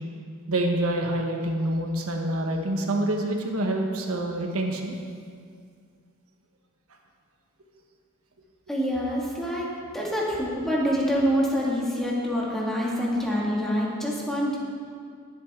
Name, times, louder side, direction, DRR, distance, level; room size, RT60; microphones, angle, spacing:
voice 1, 0.5-4.9, right 1 dB, 80° right, 2 dB, 1.2 m, -26 dB
voice 2, 8.7-14.6, equal, ahead, -5 dB, 2.3 m, -26 dB
21.0 x 7.6 x 3.8 m, 2.2 s
head